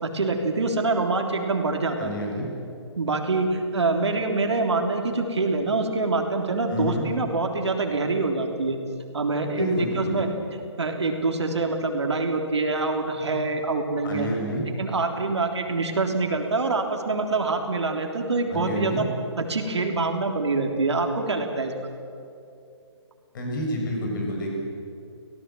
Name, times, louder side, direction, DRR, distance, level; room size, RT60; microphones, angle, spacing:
voice 1, 0.0-2.1 3.0-8.8 9.1-10.3 10.8-14.3 14.8-19.1 19.4-21.7, right 3 dB, 70° right, 3 dB, 3.4 m, -25 dB
voice 2, 2.0-2.5 6.7-7.1 9.6-10.2 14.0-14.6 18.5-19.0 23.3-24.5, left 1 dB, 45° left, 0 dB, 7.4 m, -29 dB
25.0 x 17.5 x 7.7 m, 2.6 s
figure-of-eight pair, 140°, 15 cm